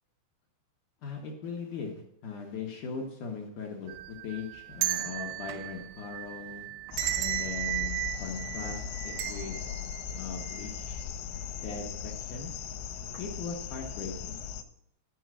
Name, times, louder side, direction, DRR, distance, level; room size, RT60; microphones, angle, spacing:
voice 1, 1.0-6.7 7.2-9.6 10.1-11.0 11.6-12.5 13.2-14.4, left 5 dB, 65° left, 1 dB, 2.0 m, -39 dB
sound 1, 3.9-11.1 11.4-11.5 12.4-12.7 13.1-13.3, right 17 dB, 85° right, 2.8 m, -36 dB
sound 2, 6.9-14.6, left 8 dB, 85° left, 2.9 m, -38 dB
11.5 x 5.5 x 6.2 m, 0.79 s
omnidirectional pair, 5.1 m